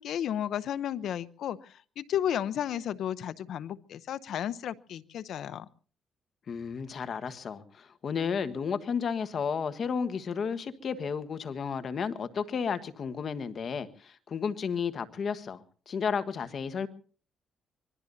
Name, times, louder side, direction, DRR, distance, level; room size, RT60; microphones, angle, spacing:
voice 1, 0.0-5.7, left 10 dB, 70° left, 15 dB, 0.8 m, -33 dB
voice 2, 6.5-16.9, left 6 dB, 50° left, 11 dB, 1.4 m, -32 dB
25.0 x 21.0 x 2.7 m, 0.42 s
cardioid pair, 90°, 0 cm